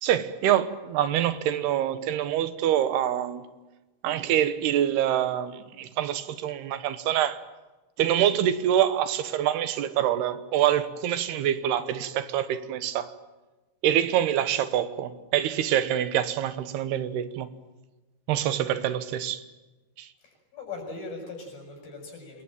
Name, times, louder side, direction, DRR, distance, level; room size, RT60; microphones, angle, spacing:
voice 1, 0.0-3.4 4.0-7.4 8.0-13.1 13.8-17.5 18.3-19.4 20.0-20.1, right 11 dB, 85° right, 3.3 m, -25 dB
voice 2, 20.2-22.4, left 3 dB, 65° left, 9.1 m, -40 dB
27.0 x 22.0 x 9.1 m
omnidirectional pair, 4.6 m